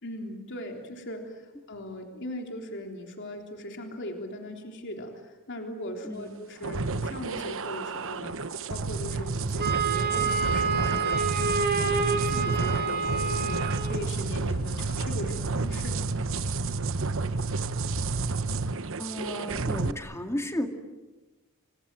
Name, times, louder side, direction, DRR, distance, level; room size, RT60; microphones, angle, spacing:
voice 1, 0.0-8.4 8.7-16.1, left 1 dB, 55° left, 3 dB, 3.6 m, -39 dB
voice 2, 6.0-6.4 19.0-20.7, left 1 dB, 15° left, 5 dB, 2.4 m, -33 dB
sound 1, 6.6-19.9, right 3 dB, 60° right, 1.1 m, -30 dB
Wind instrument woodwind instrument, 9.6-14.0, right 5 dB, 45° right, 3.4 m, -28 dB
30.0 x 26.0 x 7.6 m, 1.2 s
head